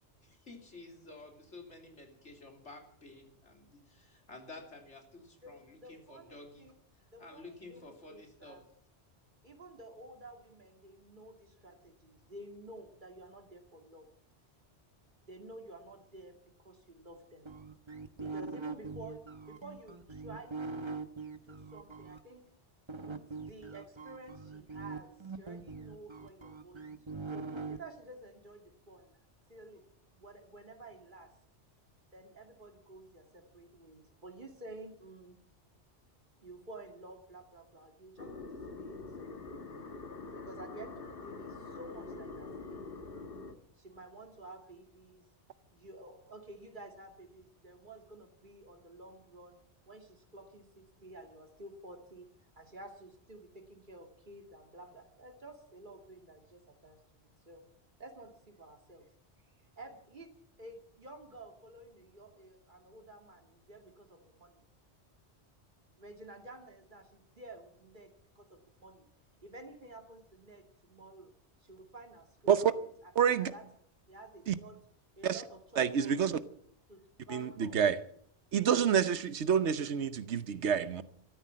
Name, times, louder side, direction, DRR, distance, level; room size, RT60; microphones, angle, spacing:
voice 1, 0.2-6.7 7.2-8.6, left 2 dB, 90° left, 3.6 m, -52 dB
voice 2, 5.4-6.7 7.1-8.6 9.4-14.1 15.2-17.5 18.1-19.2 19.5-20.9 21.3-22.5 22.9-29.1 29.5-29.8 30.1-31.3 32.1-35.4 36.4-39.6 40.3-42.8 43.1-43.3 43.8-45.2 45.7-49.6 49.9-52.3 52.5-57.6 58.0-59.1 59.8-60.3 60.6-64.6 66.0-69.1 69.4-71.3 71.6-73.6 74.1-74.8 75.2-76.2 76.9-77.8, right 2 dB, 45° right, 2.4 m, -52 dB
sound 1, 17.5-22.2 22.9-27.8, right 4 dB, 25° right, 1.0 m, -42 dB
sound 2, 38.2-43.5, left 3 dB, 55° left, 1.6 m, -45 dB
voice 3, 73.2-73.5 74.5-74.6 75.2-75.4 75.8-76.4 77.3-78.0 78.5-81.0, right 8 dB, 80° right, 1.2 m, -28 dB
13.5 x 13.5 x 7.5 m
omnidirectional pair, 1.2 m